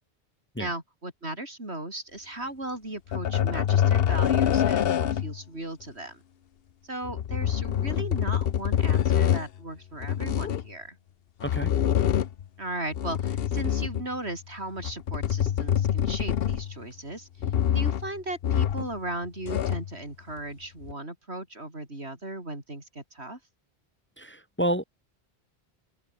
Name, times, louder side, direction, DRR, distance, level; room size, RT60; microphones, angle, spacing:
voice 1, 0.6-6.2 6.8-11.0 12.6-17.3 17.7-23.4, right 2 dB, 80° right, 5.9 m, -37 dB
sound 1, 3.1-5.4 7.0-9.5 10.0-10.7 11.4-12.5 12.9-14.2 14.8-16.8 17.4-18.1 18.4-19.0 19.3-19.9 20.8-20.9, left 10 dB, 65° left, 0.9 m, -25 dB
voice 2, 11.4-11.7 24.2-24.8, equal, 10° left, 1.5 m, -29 dB
open air
omnidirectional pair, 1.1 m